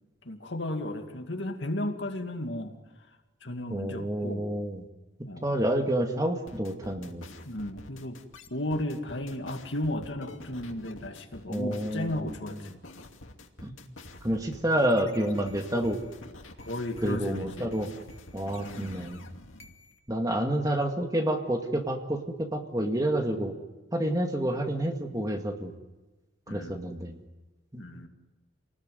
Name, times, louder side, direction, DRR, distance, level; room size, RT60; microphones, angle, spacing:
voice 1, 0.2-2.7 3.4-4.5 5.2-5.5 7.4-8.2 8.5-12.8 16.6-17.7 18.6-19.1 26.5-27.0 27.8-28.1, left 1 dB, 65° left, 5 dB, 2.4 m, -34 dB
voice 2, 3.7-4.8 5.4-7.3 11.5-12.6 13.6-13.7 14.2-16.0 17.0-17.9 18.3-19.2 20.1-23.5 23.9-25.7 26.5-27.2 27.7-27.8, right 1 dB, 20° right, 4 dB, 2.1 m, -29 dB
sound 1, 6.5-20.0, left 2 dB, 85° left, 2.6 m, -48 dB
28.0 x 19.5 x 9.5 m, 1.1 s
head